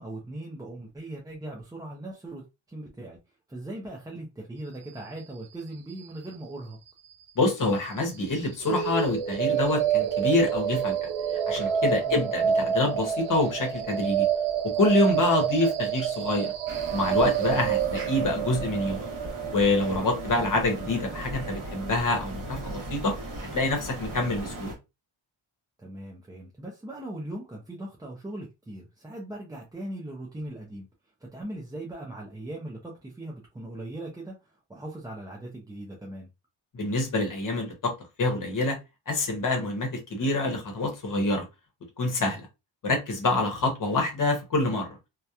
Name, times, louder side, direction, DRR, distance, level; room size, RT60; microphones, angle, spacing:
voice 1, 0.0-2.4 2.7-3.2 3.5-6.8 12.0-12.2 25.8-30.9 31.3-34.3 34.7-36.3, right 1 dB, 10° right, 0.3 m, -39 dB
voice 2, 7.4-11.1 11.5-14.3 14.7-16.5 16.9-19.0 19.5-23.1 23.5-24.7 36.7-37.9 38.2-38.8 39.1-41.5 42.0-42.5 42.8-44.9, left 2 dB, 40° left, 0.8 m, -26 dB
sound 1, 8.6-22.6, right 8 dB, 80° right, 0.6 m, -28 dB
sound 2, 16.7-24.7, right 1 dB, 40° right, 0.9 m, -38 dB
2.8 x 2.1 x 2.3 m
wide cardioid pair, 150°, 48 cm